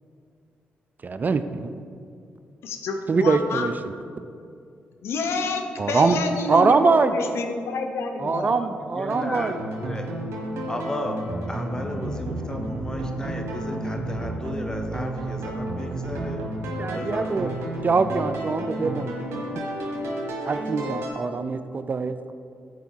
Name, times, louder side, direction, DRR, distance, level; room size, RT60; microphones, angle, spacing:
voice 1, 1.0-1.8 3.1-3.7 5.8-6.2 6.5-7.1 8.2-9.5 16.8-17.5 17.8-19.1 20.4-22.3, right 4 dB, 40° right, 11 dB, 0.4 m, -23 dB
voice 2, 2.6-3.7 5.0-8.5, left 3 dB, 75° left, 5 dB, 0.7 m, -28 dB
voice 3, 8.2-9.5 9.8-10.1 10.7-11.2 11.5-16.5 16.9-17.6, left 1 dB, 15° left, 4 dB, 1.0 m, -34 dB
sound 1, 9.1-21.1, right 1 dB, 75° right, 1.3 m, -31 dB
8.2 x 4.6 x 4.6 m, 2.4 s
supercardioid pair, 50°, 4 cm